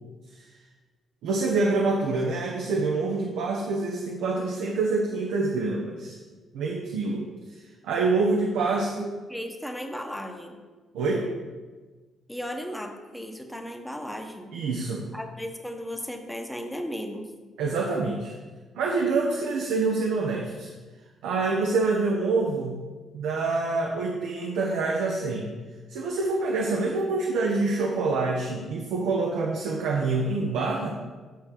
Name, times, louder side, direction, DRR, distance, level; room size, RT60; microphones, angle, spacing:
voice 1, 1.2-6.2 6.5-8.9 10.9-11.3 14.5-15.0 17.6-18.3 18.7-20.7 21.2-22.8 23.1-25.5 25.9-30.9, right 3 dB, 90° right, 0 dB, 0.9 m, -26 dB
voice 2, 9.0-10.6 12.3-14.5 15.1-17.3, equal, 5° left, 3 dB, 1.0 m, -35 dB
8.5 x 5.9 x 3.8 m, 1.3 s
cardioid pair, 90°, 0 cm